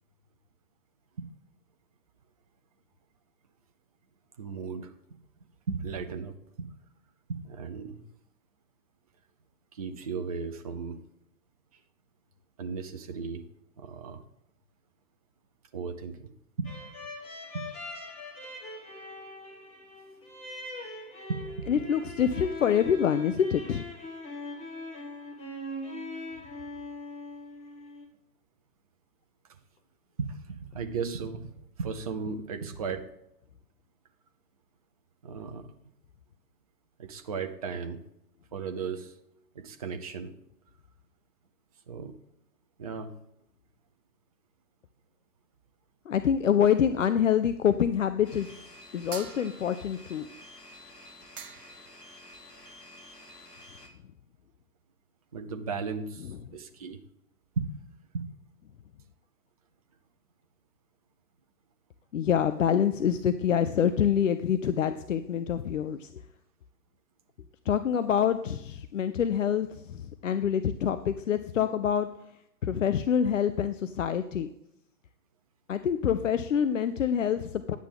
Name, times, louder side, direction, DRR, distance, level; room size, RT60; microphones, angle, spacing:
voice 1, 4.4-4.9 5.7-6.7 7.3-8.0 9.7-11.0 12.6-13.5 13.8-14.2 15.7-16.3 16.6-16.7 17.5-17.7 21.3-21.7 30.2-33.1 35.2-35.6 37.0-38.0 38.5-39.1 39.6-40.3 41.9-42.2 42.8-43.1 55.3-56.3 56.5-57.0 57.6-57.7 58.1-58.3, right 5 dB, 25° right, 7 dB, 0.5 m, -35 dB
sound 1, 16.6-28.1, left 1 dB, 15° left, 1.3 m, -41 dB
voice 2, 21.7-23.8 46.1-48.5 48.9-50.3 62.1-66.1 67.7-72.1 72.6-74.5 75.7-77.8, left 8 dB, 55° left, 11 dB, 0.6 m, -26 dB
sound 2, 48.2-53.9, left 1 dB, 80° left, 2.1 m, -50 dB
sound 3, 49.1-49.9 51.0-51.1 51.4-51.9, right 7 dB, 65° right, 0.9 m, -44 dB
10.0 x 8.3 x 3.7 m, 0.78 s
figure-of-eight pair, 120°, 47 cm